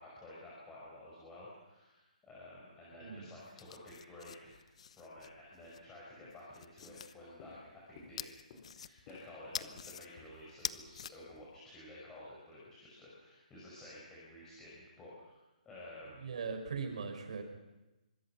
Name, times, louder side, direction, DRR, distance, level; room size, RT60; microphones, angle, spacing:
voice 1, 0.0-4.6 5.0-8.3 8.7-15.4 15.7-16.3, left 1 dB, 10° left, -6 dB, 5.2 m, -52 dB
sound 1, 3.4-5.8 6.3-7.1 8.2-9.2 9.5-10.1 10.5-11.1, left 7 dB, 50° left, 0.9 m, -45 dB
Walk footsteps, 5.8-5.9 6.2-6.5 6.8-11.4, left 4 dB, 30° left, 3.5 m, -58 dB
voice 2, 16.2-17.4, right 5 dB, 55° right, 5 dB, 5.8 m, -40 dB
25.5 x 24.5 x 5.9 m, 1.0 s
hypercardioid pair, 170°, 4 cm